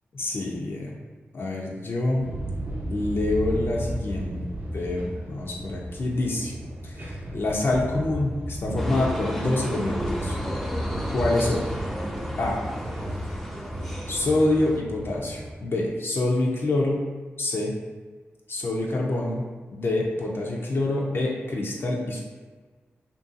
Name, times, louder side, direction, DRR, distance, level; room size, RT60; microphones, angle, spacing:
voice 1, 0.1-0.9 1.3-2.3 2.9-4.4 4.7-6.5 6.8-10.4 11.1-11.7 12.4-12.6 14.1-17.1 17.4-17.8 18.5-19.4 19.7-22.2, left 2 dB, 60° left, -2 dB, 0.5 m, -26 dB
sound 1, 2.2-15.5, equal, 50° right, 0.6 m, -33 dB
sound 2, 8.8-14.8, equal, 5° left, 0.4 m, -34 dB
2.5 x 2.2 x 2.5 m, 1.4 s
cardioid pair, 45°, 5 cm